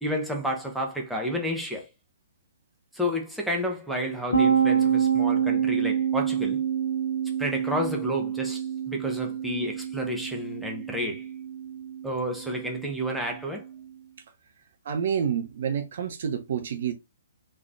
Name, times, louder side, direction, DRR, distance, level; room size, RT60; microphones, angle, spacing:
voice 1, 0.0-1.9 2.9-6.6 7.4-11.3 12.0-13.6, equal, ahead, 1.0 m, -30 dB
sound 1, 4.3-13.8, right 8 dB, 80° left, 0.9 m, -27 dB
voice 2, 14.9-16.9, right 7 dB, 55° right, 0.6 m, -28 dB
3.8 x 3.2 x 2.5 m
figure-of-eight pair, 125°, 0 cm